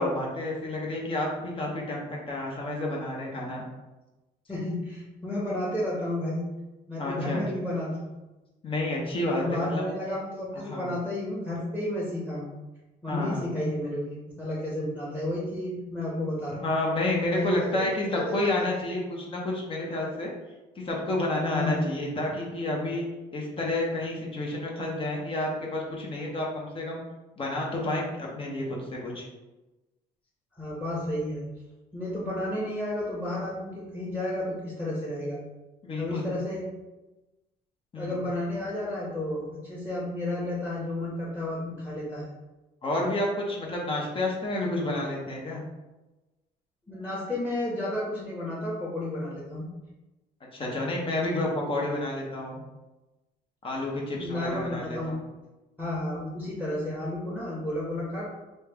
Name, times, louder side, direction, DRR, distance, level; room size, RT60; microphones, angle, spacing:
voice 1, 0.0-3.6 7.0-7.4 8.6-9.8 10.5-10.9 13.1-13.4 16.6-20.3 20.8-23.0 23.3-27.0 27.4-29.3 35.8-36.3 37.9-38.2 42.8-45.6 50.5-52.6 53.6-55.2, left 1 dB, 30° left, -2 dB, 0.8 m, -30 dB
voice 2, 4.5-6.4 6.9-8.2 9.3-12.5 13.0-14.1 14.4-16.6 17.3-17.6 18.6-18.7 21.5-21.8 30.6-31.4 31.9-35.4 36.0-36.7 38.0-42.3 46.9-49.7 54.1-55.2 55.8-58.4, left 1 dB, 10° left, -7 dB, 1.0 m, -32 dB
3.1 x 2.3 x 3.4 m, 1.1 s
cardioid pair, 110°, 17 cm